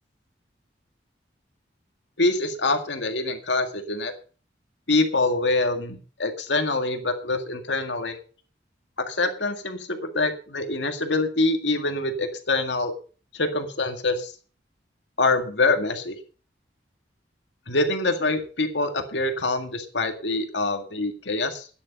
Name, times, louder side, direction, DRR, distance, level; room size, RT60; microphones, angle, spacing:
voice 1, 2.2-4.1 4.9-8.2 9.0-12.9 13.3-14.3 15.2-16.1 17.7-21.7, left 2 dB, 80° left, 6 dB, 1.9 m, -25 dB
13.0 x 10.0 x 5.4 m, 0.38 s
head